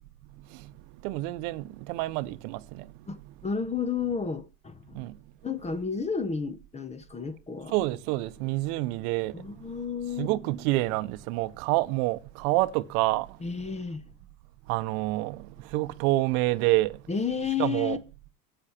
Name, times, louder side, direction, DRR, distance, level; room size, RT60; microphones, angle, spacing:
voice 1, 1.0-2.9 4.9-5.1 7.7-9.3 10.2-13.3 14.7-15.4 15.7-16.9 17.6-18.0, right 18 dB, 80° right, 1.0 m, -27 dB
voice 2, 3.1-5.0 5.4-7.7 9.3-10.3 13.4-14.1 17.1-18.0, left 5 dB, 15° left, 0.8 m, -32 dB
10.0 x 8.3 x 4.4 m
supercardioid pair, 130°, 44 cm